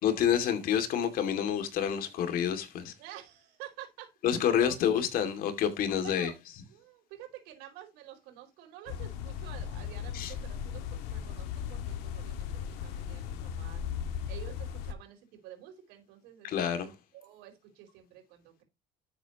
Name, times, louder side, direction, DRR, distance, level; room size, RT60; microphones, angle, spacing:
voice 1, 0.0-2.9 4.2-6.3 10.1-10.3 16.4-16.9, left 9 dB, 60° left, 2.4 m, -28 dB
voice 2, 3.0-4.8 6.0-6.4 6.7-18.6, right 12 dB, 80° right, 4.5 m, -50 dB
sound 1, 8.9-14.9, left 8 dB, 80° left, 1.9 m, -37 dB
12.5 x 7.9 x 3.0 m
supercardioid pair, 105°, 17 cm